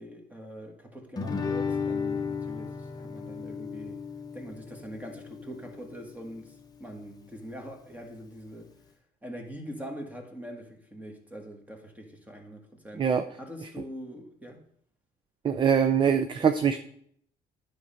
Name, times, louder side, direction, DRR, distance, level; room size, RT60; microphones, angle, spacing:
voice 1, 0.0-4.0 4.3-8.7 9.2-13.1 13.4-14.6, equal, 10° right, 1.6 m, -43 dB
Guitar, 1.2-6.2, left 5 dB, 20° left, 0.8 m, -34 dB
voice 2, 15.4-16.8, right 7 dB, 30° right, 0.5 m, -23 dB
9.8 x 5.3 x 4.3 m
cardioid pair, 110°, 17 cm